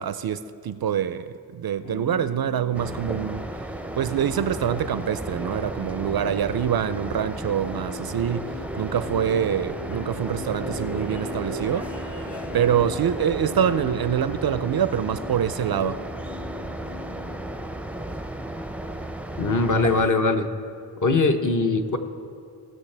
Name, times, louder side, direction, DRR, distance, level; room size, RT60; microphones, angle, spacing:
voice 1, 0.0-3.5 4.0-11.9 12.5-16.0, right 9 dB, 55° right, 0.5 m, -25 dB
sound 1, 1.8-18.1 19.6-19.7, left 2 dB, 75° left, 1.3 m, -40 dB
sound 2, 2.7-20.1, right 1 dB, 5° right, 0.5 m, -34 dB
voice 2, 19.4-20.5 21.0-22.0, left 3 dB, 40° left, 1.0 m, -21 dB
17.5 x 6.5 x 3.4 m
cardioid pair, 40°, 45 cm